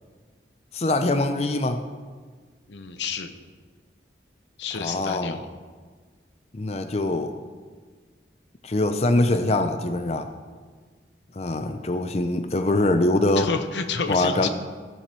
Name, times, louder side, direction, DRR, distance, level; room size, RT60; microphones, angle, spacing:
voice 1, 0.7-1.8 4.7-5.4 6.5-7.3 8.6-10.3 11.4-13.5 14.1-14.5, left 2 dB, 35° left, 7 dB, 0.5 m, -23 dB
voice 2, 2.7-3.3 4.6-5.5 13.4-14.5, left 5 dB, 85° left, 8 dB, 0.8 m, -30 dB
15.0 x 7.8 x 4.3 m, 1.5 s
head